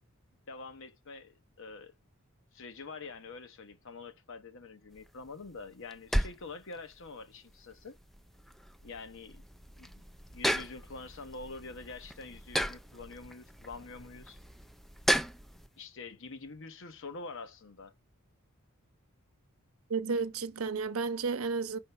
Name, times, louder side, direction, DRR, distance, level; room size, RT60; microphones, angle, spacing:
voice 1, 0.5-1.9 2.5-8.0 8.8-9.4 9.8-10.0 10.3-14.4 15.7-17.9, left 3 dB, 65° left, 0.9 m, -46 dB
sound 1, 4.9-15.7, equal, ahead, 0.3 m, -36 dB
voice 2, 19.9-21.8, right 4 dB, 70° right, 0.8 m, -32 dB
5.8 x 3.7 x 5.4 m
head